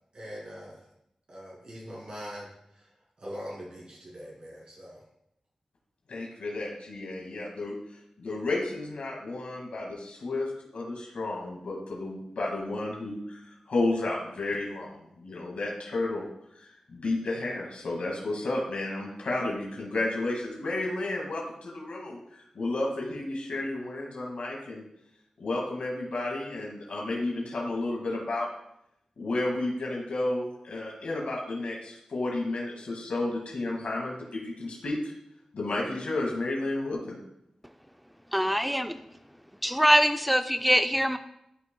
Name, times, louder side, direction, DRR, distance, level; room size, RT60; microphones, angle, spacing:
voice 1, 0.1-0.9 1.3-2.9 3.2-5.0, equal, 55° right, -5 dB, 2.5 m, -42 dB
voice 2, 6.1-7.7 8.2-16.3 16.6-22.2 22.5-24.8 25.4-28.5 29.2-35.0 35.5-37.1, left 2 dB, 90° left, -2 dB, 2.0 m, -32 dB
voice 3, 38.3-39.0 39.6-41.2, equal, ahead, 8 dB, 0.5 m, -23 dB
13.0 x 5.9 x 2.3 m, 0.80 s
wide cardioid pair, 105°, 2 cm